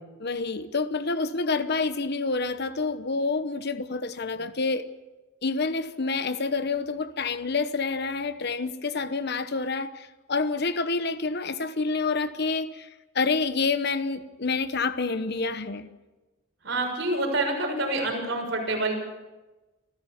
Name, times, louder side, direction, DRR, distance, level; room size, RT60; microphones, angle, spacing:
voice 1, 0.2-4.9 5.4-12.9 13.1-15.9, left 4 dB, 55° left, 1.0 m, -28 dB
voice 2, 16.6-18.9, right 2 dB, 60° right, 6.7 m, -27 dB
27.0 x 15.5 x 7.3 m
head